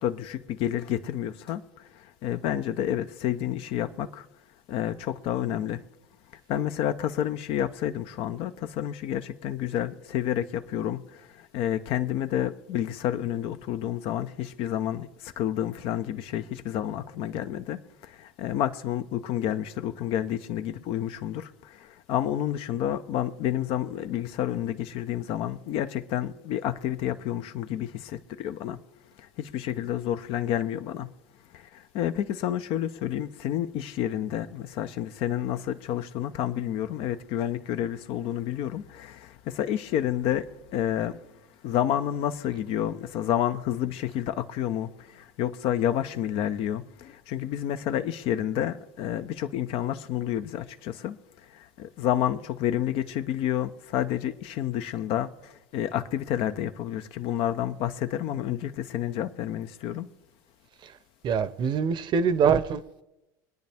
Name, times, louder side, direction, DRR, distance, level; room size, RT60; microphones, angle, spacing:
voice 1, 0.0-4.3 4.7-5.8 6.5-28.8 29.2-31.1 31.5-41.2 41.6-51.2 51.5-60.1, left 11 dB, 60° left, 0.8 m, -30 dB
voice 2, 61.2-63.0, right 6 dB, 45° right, 0.9 m, -24 dB
24.5 x 9.4 x 3.5 m
supercardioid pair, 95°, 11 cm